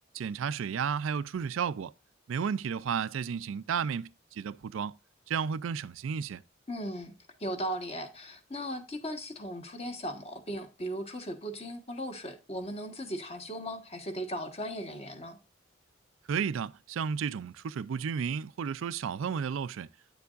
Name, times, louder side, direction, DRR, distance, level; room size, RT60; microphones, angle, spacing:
voice 1, 0.1-1.9 2.3-4.9 5.3-6.4 16.3-19.9, right 6 dB, 75° right, 0.4 m, -32 dB
voice 2, 6.7-7.1 7.4-15.4, equal, 30° left, 1.3 m, -37 dB
9.1 x 6.9 x 2.4 m
head